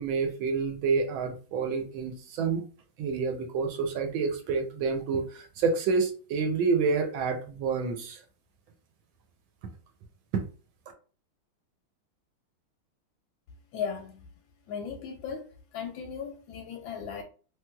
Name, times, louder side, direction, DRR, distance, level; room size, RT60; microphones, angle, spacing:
voice 1, 0.0-2.6 3.0-8.2 10.3-10.4, right 5 dB, 75° right, 1.2 m, -28 dB
voice 2, 13.7-14.3 14.7-17.2, left 7 dB, 75° left, 1.2 m, -37 dB
3.2 x 3.0 x 2.2 m
omnidirectional pair, 2.4 m